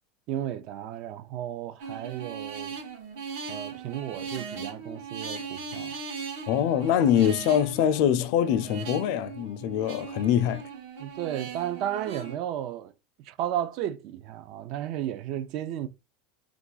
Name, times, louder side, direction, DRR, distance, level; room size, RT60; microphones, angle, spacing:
voice 1, 0.3-2.7 3.5-6.0 11.0-12.9 13.2-15.9, right 11 dB, 50° right, 0.3 m, -33 dB
sound 1, 1.8-12.4, right 5 dB, 70° right, 0.8 m, -39 dB
voice 2, 6.5-10.6, left 9 dB, 60° left, 0.3 m, -24 dB
2.4 x 2.3 x 3.8 m
supercardioid pair, 140°, 0 cm